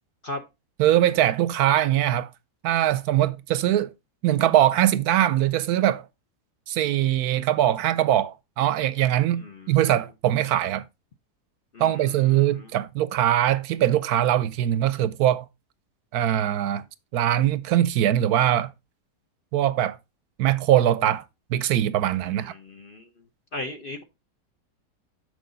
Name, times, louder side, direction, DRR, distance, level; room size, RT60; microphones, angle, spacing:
voice 1, 0.8-2.3 2.6-3.9 4.2-6.0 6.7-10.8 11.8-15.4 16.1-16.8 17.1-18.7 19.5-20.0 20.4-21.2 21.5-22.5, right 12 dB, 75° right, 1.0 m, -22 dB
voice 2, 9.3-9.8 11.7-12.7 22.2-23.1 23.5-24.0, left 2 dB, 45° left, 0.8 m, -37 dB
6.6 x 6.3 x 3.8 m
omnidirectional pair, 1.7 m